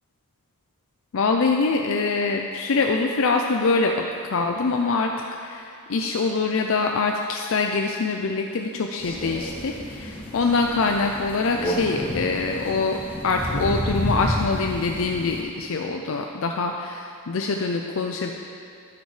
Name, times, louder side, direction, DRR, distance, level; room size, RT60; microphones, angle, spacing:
voice 1, 1.1-5.1 5.4-18.3, left 4 dB, 65° left, 2 dB, 0.5 m, -24 dB
Crow, 9.0-15.4, equal, 25° left, 1.1 m, -30 dB
11.0 x 9.6 x 3.2 m, 2.5 s
head